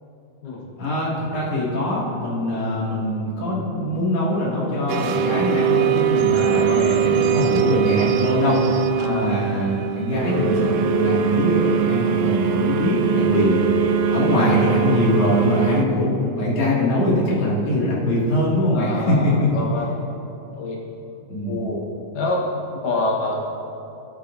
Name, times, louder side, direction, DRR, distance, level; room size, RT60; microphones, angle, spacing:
voice 1, 0.8-13.8 14.1-19.3 21.3-21.6, left 1 dB, 55° left, -6 dB, 3.1 m, -22 dB
sound 1, 4.9-15.8, right 7 dB, 80° right, 2.0 m, -21 dB
voice 2, 6.3-6.8 9.0-9.4 13.1-13.3 18.6-19.9 20.5-20.8 21.4-21.8 22.1-23.4, left 2 dB, 90° left, -3 dB, 2.8 m, -27 dB
17.0 x 8.1 x 2.6 m, 2.9 s
omnidirectional pair, 3.7 m